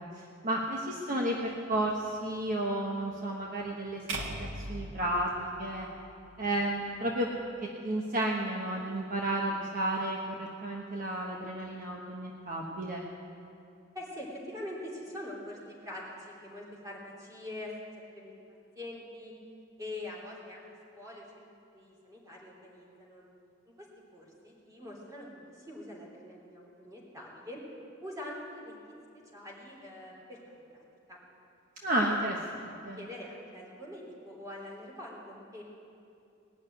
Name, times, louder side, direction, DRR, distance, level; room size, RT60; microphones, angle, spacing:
voice 1, 0.1-5.9 6.4-7.3 7.8-13.1 31.8-32.3 32.6-33.1, right 1 dB, 45° right, -2 dB, 1.1 m, -32 dB
sound 1, 4.1-6.3, right 2 dB, 90° right, 1.7 m, -39 dB
voice 2, 13.9-17.7 18.1-18.4 18.7-19.3 19.8-20.6 20.9-21.5 21.7-23.3 23.8-27.6 28.0-28.7 29.3-30.4 31.1-31.2 32.0-32.2 33.0-35.6, left 1 dB, 20° right, -4 dB, 3.2 m, -44 dB
19.0 x 6.5 x 9.4 m, 2.5 s
head